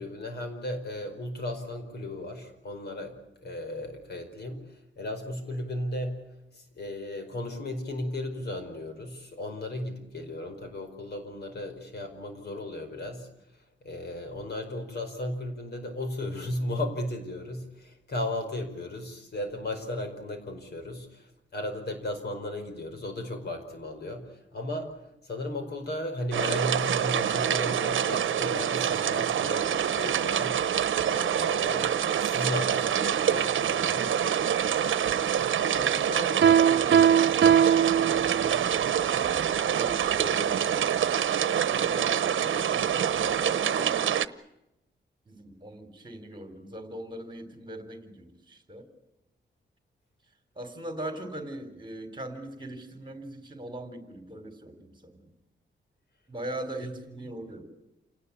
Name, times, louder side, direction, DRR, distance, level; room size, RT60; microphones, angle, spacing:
voice 1, 0.0-3.1 3.4-4.6 5.0-6.2 6.5-13.3 13.8-24.9 25.2-30.6 31.1-34.1, left 1 dB, 55° left, 7 dB, 5.0 m, -35 dB
sound 1, 26.3-44.3, right 9 dB, 85° right, 1.0 m, -26 dB
voice 2, 35.7-41.1 41.6-44.2 45.3-48.9 50.6-55.3 56.3-57.6, right 1 dB, 25° right, 7 dB, 3.7 m, -40 dB
Piano, 36.4-38.7, right 8 dB, 60° right, 0.9 m, -21 dB
29.0 x 19.0 x 8.6 m, 0.91 s
wide cardioid pair, 165°, 20 cm